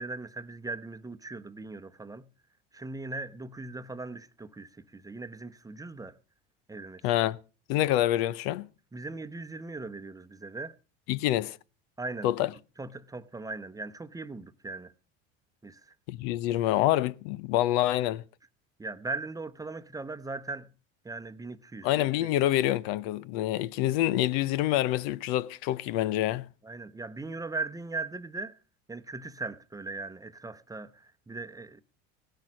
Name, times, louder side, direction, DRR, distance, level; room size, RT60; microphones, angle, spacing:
voice 1, 0.0-2.3 2.7-6.2 6.7-7.0 8.9-10.7 12.0-12.3 12.8-14.9 15.6-15.9 18.8-20.7 21.0-21.9 22.2-22.3 26.6-28.6 28.9-31.8, right 3 dB, 10° right, 0.9 m, -39 dB
voice 2, 7.0-7.4 7.7-8.7 11.1-11.6 12.2-12.5 16.1-18.2 21.8-26.5, left 14 dB, 75° left, 0.7 m, -26 dB
17.0 x 10.5 x 6.2 m
supercardioid pair, 100°, 31 cm